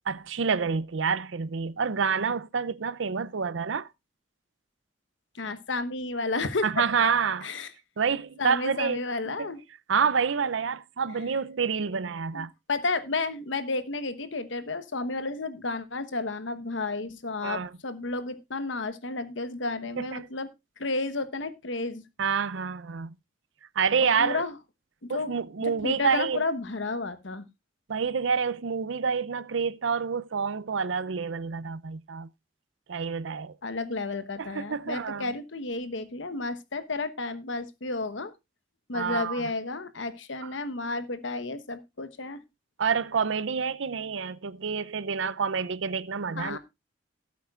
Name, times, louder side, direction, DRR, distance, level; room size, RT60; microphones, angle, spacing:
voice 1, 0.1-3.9 6.6-7.5 8.0-9.0 9.4-9.5 9.9-12.5 17.4-17.7 20.0-20.3 22.2-23.1 23.8-24.4 25.1-26.4 27.9-32.3 32.9-33.6 34.4-35.3 38.9-39.4 42.8-46.6, right 6 dB, 80° right, 0.6 m, -28 dB
voice 2, 5.3-6.8 7.4-7.7 8.4-9.6 12.3-20.5 20.8-22.0 24.2-24.5 25.0-25.3 25.6-27.4 33.6-38.3 38.9-42.4 46.3-46.6, left 3 dB, 80° left, 1.2 m, -32 dB
17.0 x 8.3 x 2.4 m
head